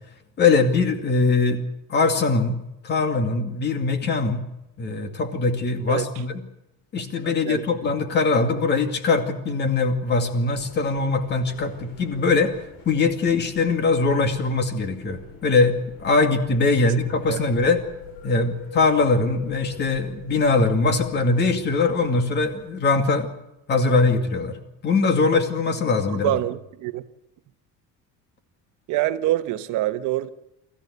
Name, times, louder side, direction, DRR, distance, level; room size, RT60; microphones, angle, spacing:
voice 1, 0.4-1.6 1.9-2.6 2.8-4.4 4.8-6.3 6.9-12.5 12.9-15.7 16.0-17.8 18.2-23.3 23.7-24.6 24.8-26.3, left 3 dB, 30° left, 2.4 m, -21 dB
sound 1, 10.4-22.7, left 5 dB, 80° left, 7.7 m, -44 dB
voice 2, 26.1-27.0 28.9-30.3, right 14 dB, 65° right, 1.2 m, -25 dB
25.0 x 14.5 x 8.1 m
cardioid pair, 180°, 33 cm